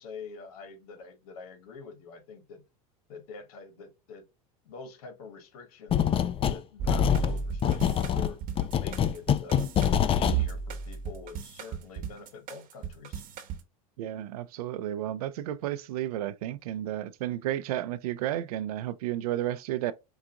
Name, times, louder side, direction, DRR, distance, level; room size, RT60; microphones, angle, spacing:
voice 1, 0.0-2.6 3.1-4.3 4.6-8.4 8.8-9.7 10.1-13.2, left 5 dB, 85° left, 1.2 m, -46 dB
sound 1, 5.9-6.6 6.9-10.4, left 9 dB, 30° left, 0.4 m, -25 dB
sound 2, 6.8-13.6, right 6 dB, 50° right, 1.0 m, -34 dB
voice 2, 14.0-19.9, right 12 dB, 90° right, 0.5 m, -32 dB
4.7 x 2.4 x 2.8 m
supercardioid pair, 110°, 19 cm